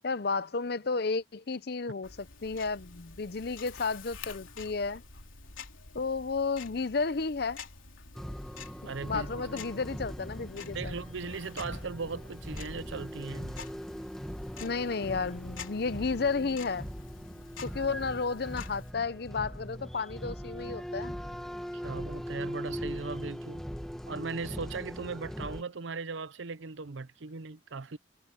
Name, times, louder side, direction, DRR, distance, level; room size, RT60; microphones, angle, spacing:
voice 1, 0.0-2.2 2.4-5.0 5.9-7.6 9.1-10.9 14.6-16.9 17.6-21.2, left 4 dB, 55° left, 0.6 m, -32 dB
Tick-tock, 2.0-18.9, left 5 dB, 85° left, 3.5 m, -48 dB
sound 1, 8.1-25.6, equal, ahead, 1.6 m, -40 dB
voice 2, 8.9-9.4 10.7-13.6 21.8-23.6 24.1-28.0, right 4 dB, 70° right, 0.7 m, -38 dB
head